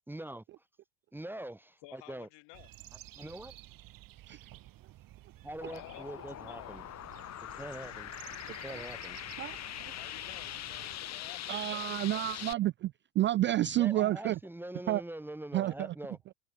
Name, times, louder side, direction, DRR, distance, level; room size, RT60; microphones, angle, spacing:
voice 1, 0.1-0.4 1.1-2.3 3.1-3.6 5.4-6.9 7.5-8.1 8.6-9.2 13.8-16.2, right 1 dB, 5° right, 2.6 m, -43 dB
voice 2, 1.8-2.7 5.7-6.8 9.9-11.6, left 26 dB, 60° left, 5.1 m, -52 dB
sound 1, 2.5-11.0, right 15 dB, 45° right, 7.8 m, -53 dB
sound 2, 5.6-12.5, left 12 dB, 35° left, 2.5 m, -42 dB
voice 3, 8.5-8.8 9.4-9.9 11.5-14.4 14.9-15.0 15.5-16.0, right 14 dB, 25° right, 0.4 m, -30 dB
cardioid pair, 150°, 47 cm